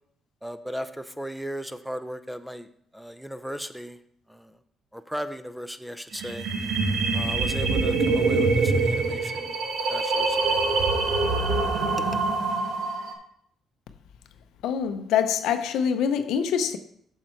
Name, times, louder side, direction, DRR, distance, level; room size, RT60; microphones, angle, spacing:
voice 1, 0.4-2.7 2.9-4.0 4.3-4.5 4.9-6.5 7.1-9.5 9.9-10.6 11.8-12.2, equal, ahead, 0.6 m, -36 dB
sound 1, 6.1-13.1, right 3 dB, 75° right, 1.6 m, -24 dB
voice 2, 14.6-16.8, left 8 dB, 85° left, 0.6 m, -25 dB
7.2 x 6.6 x 4.5 m
cardioid pair, 90°, 0 cm